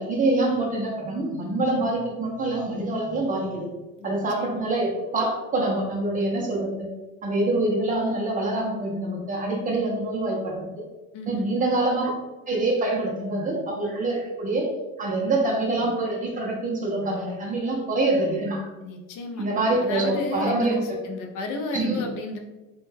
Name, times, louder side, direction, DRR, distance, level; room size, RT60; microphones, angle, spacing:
voice 1, 0.0-3.7 4.0-6.9 7.2-10.6 11.3-12.1 12.5-14.7 15.0-18.7 19.4-20.7 21.7-22.0, right 2 dB, 25° right, -2 dB, 0.4 m, -25 dB
voice 2, 4.0-4.6 11.1-11.6 18.8-19.5 19.8-22.4, left 2 dB, 70° left, 2 dB, 0.5 m, -33 dB
2.1 x 2.0 x 3.1 m, 1.1 s
cardioid pair, 150°, 33 cm